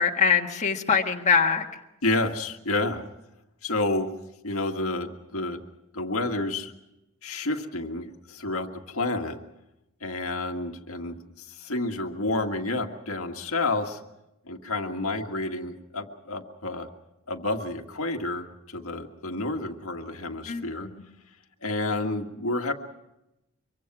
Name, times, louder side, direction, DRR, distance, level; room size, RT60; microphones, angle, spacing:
voice 1, 0.0-1.6 20.5-21.0, left 6 dB, 35° left, 1 dB, 1.6 m, -23 dB
voice 2, 2.0-3.0 3.6-4.1 4.4-5.6 5.9-6.7 7.2-9.4 10.0-14.0 14.5-16.9 17.3-20.9 21.6-22.7, left 2 dB, 75° left, 3 dB, 1.8 m, -30 dB
24.5 x 24.0 x 6.1 m, 0.90 s
head